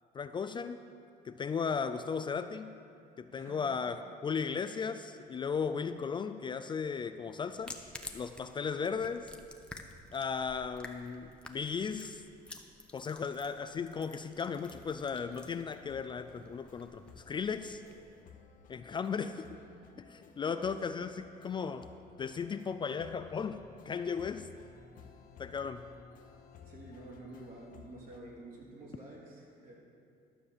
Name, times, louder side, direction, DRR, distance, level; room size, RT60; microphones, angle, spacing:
voice 1, 0.1-0.8 1.2-2.7 3.2-7.8 8.1-9.3 10.1-12.2 12.9-17.8 18.7-19.3 20.1-21.9 22.2-24.5 25.4-25.8, left 6 dB, 30° left, 9 dB, 0.3 m, -36 dB
voice 2, 3.3-3.9 19.2-19.3 19.6-20.1 20.5-21.1 26.6-29.7, right 2 dB, 60° right, -4 dB, 3.2 m, -50 dB
sound 1, 7.5-18.2, left 1 dB, 5° left, 0.8 m, -52 dB
sound 2, 14.4-28.2, left 6 dB, 55° left, 0.9 m, -57 dB
12.0 x 5.8 x 7.0 m, 2.4 s
cardioid pair, 110°, 17 cm